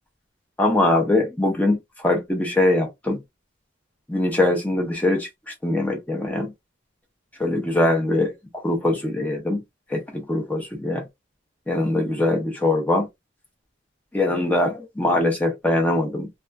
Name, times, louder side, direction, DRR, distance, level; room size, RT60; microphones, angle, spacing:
voice 1, 0.6-3.2 4.1-6.5 7.4-8.3 8.6-9.6 9.9-11.0 11.7-13.1 14.1-16.3, left 1 dB, 10° left, 0.5 m, -22 dB
2.3 x 2.3 x 2.3 m
head